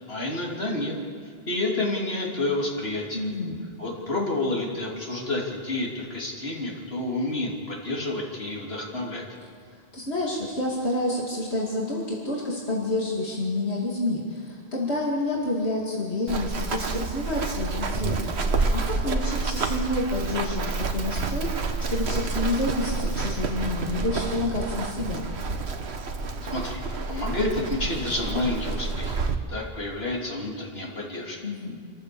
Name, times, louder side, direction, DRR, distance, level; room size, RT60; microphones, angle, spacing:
voice 1, 0.1-1.0 1.5-3.3 3.8-9.2 26.4-26.8 27.1-29.2 29.5-31.4, left 2 dB, 70° left, -3 dB, 3.5 m, -29 dB
voice 2, 3.1-3.6 9.7-25.2 31.4-31.8, left 1 dB, 85° left, -4 dB, 2.8 m, -29 dB
Run, 16.3-29.4, right 3 dB, 85° right, 1.4 m, -29 dB
26.5 x 14.5 x 7.0 m, 2.2 s
omnidirectional pair, 1.1 m